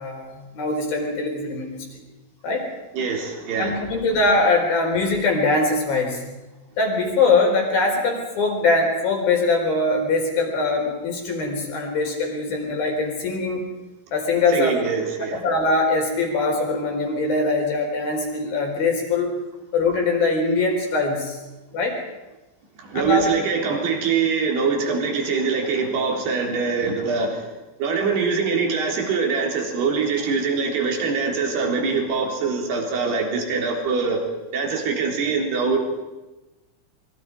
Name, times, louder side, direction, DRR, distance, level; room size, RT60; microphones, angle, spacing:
voice 1, 0.0-1.8 2.4-2.7 3.6-6.2 6.8-13.7 14.1-14.8 15.3-19.3 19.7-21.4 21.7-22.0 22.9-23.3, left 3 dB, 50° left, 2 dB, 5.9 m, -22 dB
voice 2, 2.9-3.8 14.5-15.4 22.8-27.5 27.8-34.2 34.5-36.0, right 5 dB, 55° right, 1 dB, 5.5 m, -23 dB
26.5 x 23.5 x 4.8 m, 1.1 s
omnidirectional pair, 5.6 m